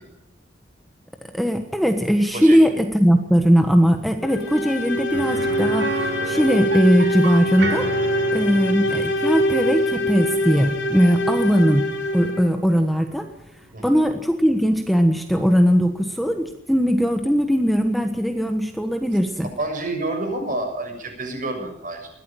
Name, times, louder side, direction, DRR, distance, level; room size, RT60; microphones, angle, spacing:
voice 1, 1.3-7.9 8.3-11.9 12.1-13.3 13.8-19.5, equal, ahead, 5 dB, 1.3 m, -19 dB
sound 1, 4.2-12.6, equal, 85° left, 4.4 m, -24 dB
sound 2, 5.1-14.9 15.2-15.3 17.7-17.8, right 2 dB, 65° right, 2.8 m, -33 dB
voice 2, 19.6-22.1, right 2 dB, 45° right, 5 dB, 6.8 m, -28 dB
22.0 x 16.0 x 9.0 m, 0.77 s
head